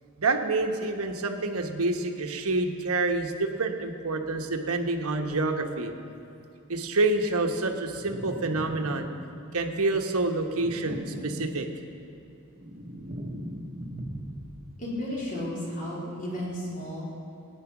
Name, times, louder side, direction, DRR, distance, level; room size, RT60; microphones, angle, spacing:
voice 1, 0.2-5.9 6.7-9.1 9.5-11.7, right 2 dB, 70° right, 4 dB, 1.2 m, -27 dB
sound 1, 7.9-9.5 10.5-12.0 12.4-14.7, equal, 35° right, 1.2 m, -39 dB
voice 2, 14.8-17.0, left 1 dB, 35° left, -5 dB, 4.0 m, -33 dB
18.0 x 10.0 x 6.0 m, 2.8 s
head